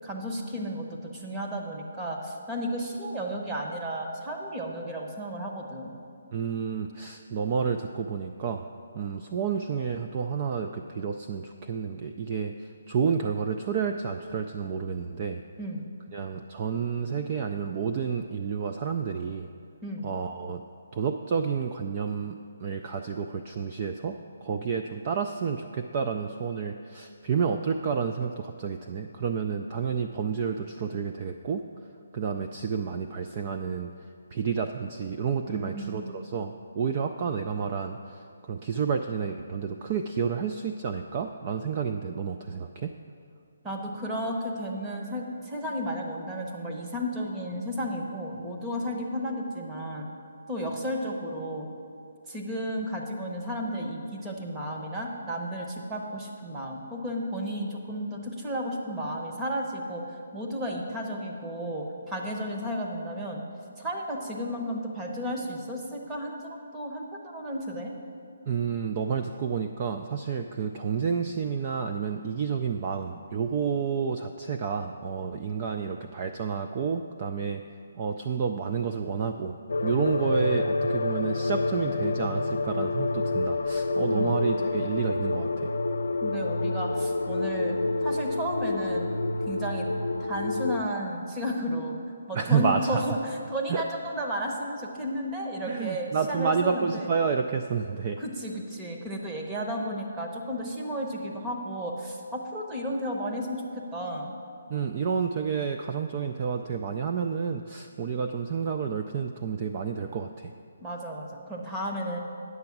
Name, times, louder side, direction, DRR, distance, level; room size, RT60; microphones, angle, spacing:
voice 1, 0.0-0.8 1.1-6.0 15.6-15.8 19.8-20.1 35.5-36.1 43.6-50.1 50.5-51.7 52.3-60.0 60.3-63.4 63.8-67.9 84.1-84.3 86.2-89.1 89.5-89.9 90.2-92.0 92.3-97.1 98.2-104.3 110.8-112.2, equal, 10° right, -1 dB, 1.0 m, -33 dB
voice 2, 6.3-8.7 8.9-15.4 16.1-19.5 20.0-20.6 20.9-22.4 22.6-24.1 24.4-31.6 32.1-33.9 34.3-42.9 68.5-77.6 78.0-79.6 79.8-85.7 92.3-93.0 93.7-93.8 95.7-98.2 104.7-110.5, right 6 dB, 35° right, 6 dB, 0.3 m, -30 dB
sound 1, 79.7-90.8, left 3 dB, 80° left, 0.5 m, -28 dB
9.5 x 6.8 x 5.9 m, 2.4 s
hypercardioid pair, 160°, 0 cm